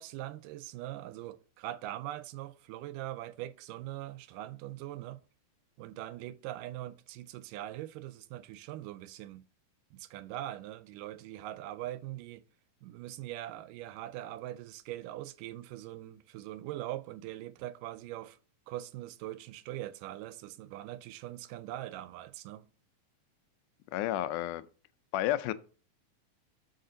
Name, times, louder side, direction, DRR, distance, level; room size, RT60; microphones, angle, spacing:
voice 1, 0.0-5.2 5.8-9.4 9.9-12.5 12.8-18.4 18.7-22.7, right 14 dB, 90° right, 2.2 m, -42 dB
voice 2, 23.9-24.6 25.1-25.5, left 13 dB, 80° left, 2.0 m, -31 dB
6.8 x 6.6 x 3.9 m
omnidirectional pair, 3.7 m